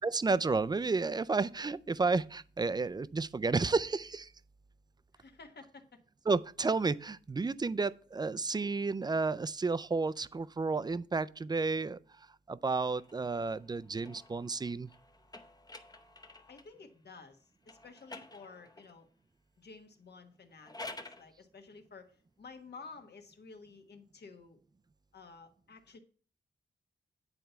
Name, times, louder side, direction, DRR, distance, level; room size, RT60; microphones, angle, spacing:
voice 1, 0.0-4.3 6.3-14.9, right 4 dB, 20° right, 0.4 m, -32 dB
voice 2, 5.1-6.0 16.5-19.1 19.6-24.6 25.1-26.0, left 4 dB, 60° left, 1.3 m, -52 dB
sound 1, 12.8-16.8 17.6-19.0 20.4-21.3, left 2 dB, 20° left, 0.7 m, -50 dB
9.5 x 4.4 x 6.8 m
wide cardioid pair, 130°, 20 cm